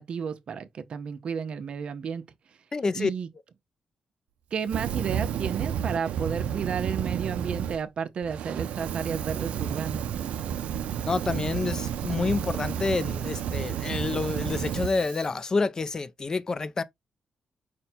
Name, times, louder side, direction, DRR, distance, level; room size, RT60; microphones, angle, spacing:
voice 1, 0.0-2.2 2.9-3.3 4.5-10.1, right 6 dB, 55° right, 0.7 m, -32 dB
voice 2, 2.7-3.1 11.1-16.8, left 3 dB, 30° left, 0.4 m, -28 dB
Fire, 4.6-7.8 8.2-15.3, right 9 dB, 85° right, 0.4 m, -31 dB
5.3 x 2.2 x 4.3 m
cardioid pair, 120°, 2 cm